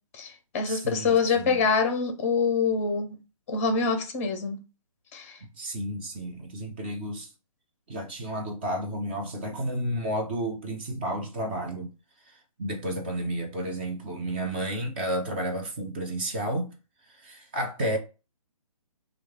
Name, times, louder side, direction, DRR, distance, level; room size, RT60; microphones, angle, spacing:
voice 1, 0.1-3.2 3.5-4.6 5.1-5.4, left 5 dB, 25° left, 0.6 m, -25 dB
voice 2, 0.6-1.6 5.5-7.3 7.9-11.9 12.2-16.7 17.0-18.0, right 1 dB, 20° right, 0.5 m, -32 dB
3.1 x 2.4 x 3.5 m
figure-of-eight pair, 135°, 19 cm